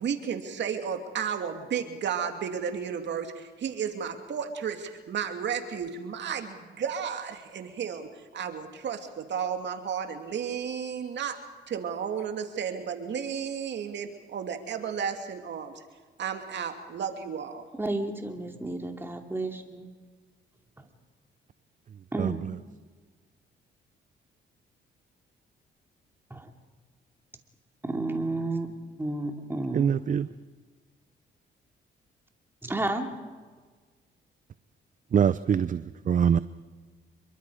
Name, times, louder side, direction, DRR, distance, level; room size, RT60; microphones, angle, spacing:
voice 1, 0.0-8.1 8.3-11.4 11.7-15.8 16.2-17.6, right 7 dB, 65° right, 2.5 m, -33 dB
voice 2, 17.7-19.9 22.1-22.4 26.3-26.5 27.8-29.9 32.6-33.1, right 2 dB, 10° right, 2.6 m, -32 dB
voice 3, 29.7-30.3 35.1-35.8 36.1-36.4, right 8 dB, 40° right, 0.6 m, -23 dB
27.0 x 23.0 x 5.0 m
cardioid pair, 90°, 20 cm